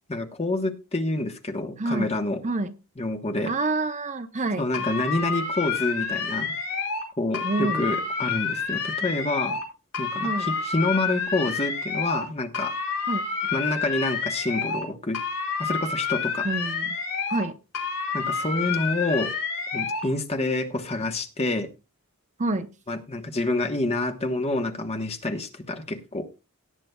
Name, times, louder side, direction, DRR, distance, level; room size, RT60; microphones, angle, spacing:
voice 1, 0.1-2.4 3.0-3.5 4.6-6.5 7.2-9.6 10.0-12.7 13.5-15.2 15.6-16.5 18.1-19.3 19.7-21.7 22.9-26.3, left 2 dB, 30° left, 6 dB, 1.2 m, -27 dB
voice 2, 1.8-2.1 2.4-2.7 3.5-4.6 7.4-7.9 10.2-10.5 13.1-13.2 16.4-16.9 17.3-17.6 22.4-22.7, right 2 dB, 30° right, 9 dB, 0.7 m, -27 dB
sound 1, 4.7-7.1 7.3-9.7 9.9-12.3 12.5-14.9 15.1-17.5 17.7-20.1, left 5 dB, 85° left, 5.0 m, -29 dB
17.5 x 9.6 x 2.3 m, 0.28 s
head